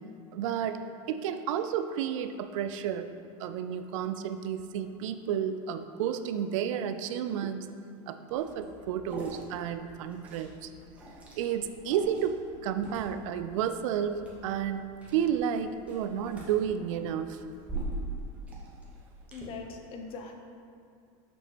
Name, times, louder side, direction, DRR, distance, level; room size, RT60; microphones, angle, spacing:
voice 1, 0.3-0.8 1.1-3.1 3.4-7.7 8.1-10.7 11.4-17.4, right 8 dB, 70° right, 9 dB, 0.4 m, -31 dB
Liquid, 8.3-19.4, right 2 dB, 10° right, 1.0 m, -43 dB
voice 2, 19.3-20.4, left 4 dB, 35° left, 4 dB, 0.6 m, -41 dB
6.2 x 5.7 x 2.9 m, 2.3 s
supercardioid pair, 145°, 17 cm